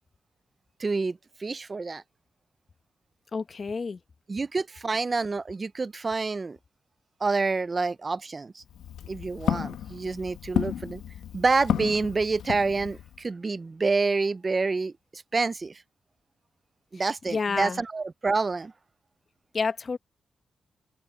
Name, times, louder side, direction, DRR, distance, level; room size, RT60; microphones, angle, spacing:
voice 1, 0.8-2.0 4.3-6.6 7.2-8.6 9.1-11.0 11.3-15.8 16.9-18.7, right 3 dB, 40° right, 0.6 m, -28 dB
voice 2, 3.3-4.0 16.9-17.8 19.5-20.0, left 4 dB, 50° left, 1.5 m, -30 dB
Walk footsteps, 8.6-13.2, left 9 dB, 85° left, 1.0 m, -32 dB
supercardioid pair, 50°, 0 cm